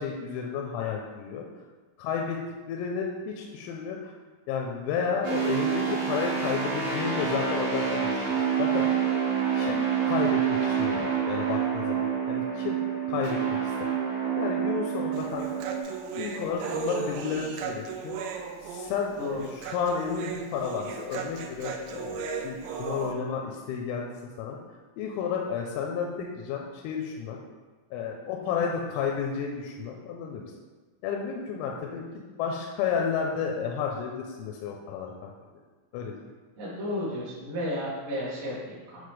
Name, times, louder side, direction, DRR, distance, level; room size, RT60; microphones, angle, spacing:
voice 1, 0.0-1.5 2.0-2.4 2.7-4.1 4.5-8.9 9.5-12.8 13.1-13.7 14.4-15.6 16.1-18.2 18.6-24.1 24.4-24.6 25.0-27.4 27.9-30.5 31.0-32.1 32.4-35.3 35.9-36.2, left 6 dB, 85° left, 0 dB, 3.3 m, -32 dB
sound 1, 5.2-15.8, right 7 dB, 50° right, 2.4 m, -27 dB
Human voice, 15.1-23.1, right 6 dB, 90° right, 3.4 m, -36 dB
voice 2, 36.6-39.1, left 1 dB, 75° right, -8 dB, 1.2 m, -33 dB
8.4 x 3.9 x 3.3 m, 1.3 s
omnidirectional pair, 6.0 m